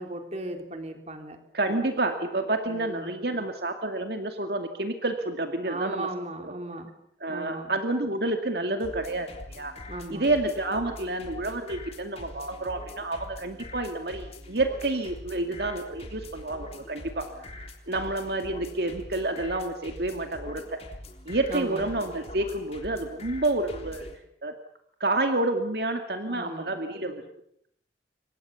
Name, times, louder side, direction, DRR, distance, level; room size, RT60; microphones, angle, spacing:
voice 1, 0.0-1.4 2.7-3.1 5.6-6.9 7.3-7.7 9.9-10.3 21.5-21.8 26.3-27.1, right 1 dB, 35° right, 5 dB, 3.7 m, -37 dB
voice 2, 1.5-6.1 6.4-6.5 7.2-9.7 10.1-20.6 21.3-24.1 24.4-24.6 25.0-27.3, right 2 dB, 65° right, 5 dB, 2.4 m, -29 dB
sound 1, 8.8-24.2, left 1 dB, 35° left, 3.8 m, -43 dB
28.5 x 24.0 x 7.2 m, 0.69 s
head